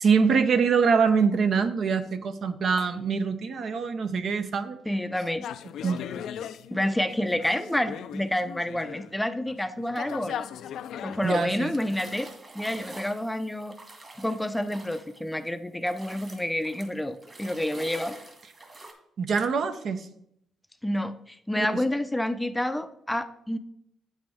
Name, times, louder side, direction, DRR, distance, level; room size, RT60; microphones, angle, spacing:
voice 1, 0.0-4.8 5.8-6.0 11.2-11.7 19.2-20.1 21.6-21.7, right 5 dB, 55° right, 9 dB, 0.7 m, -24 dB
voice 2, 4.9-5.5 6.7-10.5 11.0-12.3 12.5-13.7 14.2-18.2 20.8-23.6, left 1 dB, 5° left, 10 dB, 0.5 m, -29 dB
sound 1, 5.4-9.1 9.5-12.3, left 9 dB, 75° left, 0.4 m, -39 dB
sound 2, 11.5-15.5 15.8-18.9, right 2 dB, 30° right, 2.1 m, -46 dB
8.7 x 7.4 x 3.5 m, 0.76 s
cardioid pair, 90°, 0 cm